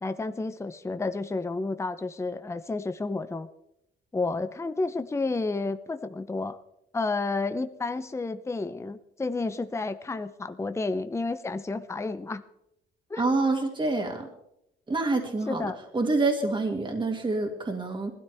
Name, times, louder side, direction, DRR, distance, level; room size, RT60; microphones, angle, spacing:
voice 1, 0.0-3.5 4.1-6.6 6.9-12.4 13.1-13.3 15.5-15.8, left 3 dB, 15° left, 10 dB, 0.7 m, -31 dB
voice 2, 13.2-14.3 14.9-18.1, right 3 dB, 25° right, 3 dB, 2.3 m, -27 dB
19.0 x 13.0 x 3.5 m, 0.82 s
cardioid pair, 90°, 20 cm